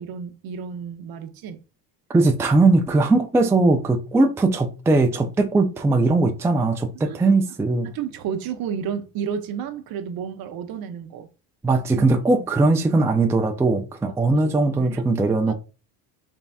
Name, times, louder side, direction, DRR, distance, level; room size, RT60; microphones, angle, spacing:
voice 1, 0.0-1.6 6.9-7.4 7.8-11.3 11.9-12.1 14.3-15.3, right 7 dB, 55° right, 0.8 m, -32 dB
voice 2, 2.1-7.9 11.6-15.5, right 3 dB, 5° right, 0.4 m, -19 dB
3.9 x 3.5 x 2.3 m
supercardioid pair, 85°, 43 cm